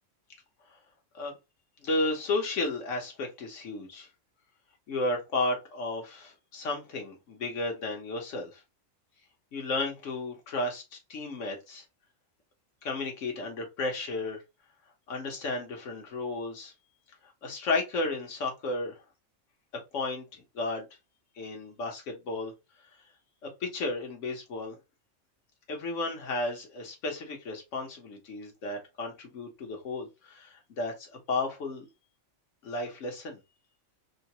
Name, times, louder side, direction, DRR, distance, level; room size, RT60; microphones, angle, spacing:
voice 1, 1.8-4.1 4.9-8.6 9.5-10.8 11.1-11.8 12.8-14.4 15.1-16.7 17.4-19.0 19.9-20.9 21.4-22.5 23.6-24.8 25.7-31.8 32.6-33.4, left 2 dB, 75° left, 1.4 m, -33 dB
3.7 x 2.2 x 2.8 m
omnidirectional pair, 1.3 m